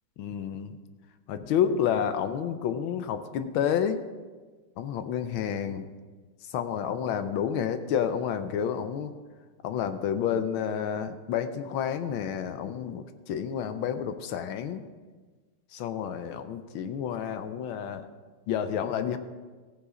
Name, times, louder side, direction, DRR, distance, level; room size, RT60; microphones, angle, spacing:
voice 1, 0.2-0.8 1.3-4.0 4.8-5.9 6.5-9.1 9.6-14.8 15.7-18.1 18.5-19.2, left 8 dB, 75° left, 10 dB, 1.4 m, -30 dB
15.0 x 7.2 x 4.9 m, 1.4 s
omnidirectional pair, 2.3 m